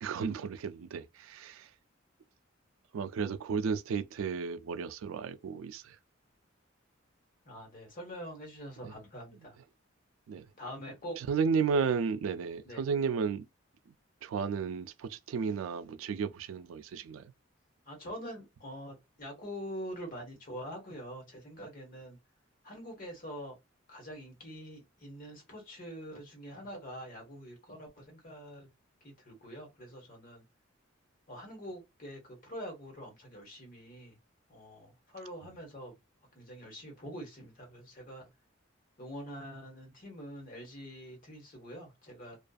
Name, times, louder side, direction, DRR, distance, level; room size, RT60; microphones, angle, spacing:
voice 1, 0.0-1.7 2.9-6.0 8.8-8.9 10.3-10.5 11.2-13.5 14.2-17.3, right 5 dB, 85° right, 0.3 m, -33 dB
voice 2, 7.4-9.6 10.6-11.2 12.6-12.8 17.9-22.2 22.6-23.5 23.9-28.7 29.0-30.4 31.3-34.2 34.5-36.0 36.3-38.3 39.0-42.4, equal, 45° left, 1.1 m, -45 dB
2.5 x 2.3 x 2.3 m
head